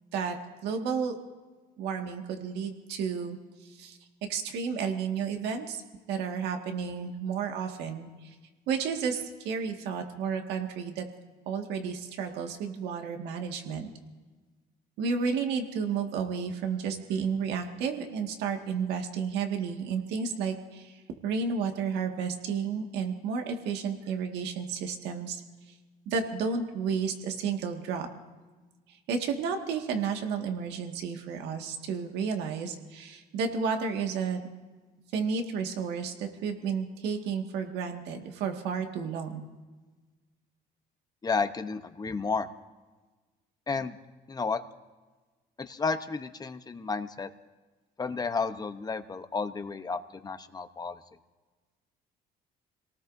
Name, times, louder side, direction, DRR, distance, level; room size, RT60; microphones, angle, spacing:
voice 1, 0.6-1.2 1.8-3.4 3.7-4.0 4.3-5.8 6.1-8.3 8.7-11.1 11.5-13.9 15.0-25.4 26.1-28.1 29.1-34.4 35.1-39.4, right 6 dB, 85° right, 3 dB, 1.9 m, -32 dB
voice 2, 41.2-42.5 43.7-43.9 44.3-44.6 45.6-47.3 48.0-51.0, left 4 dB, 25° left, 9 dB, 0.9 m, -32 dB
27.0 x 18.5 x 2.7 m, 1.3 s
cardioid pair, 110°, 17 cm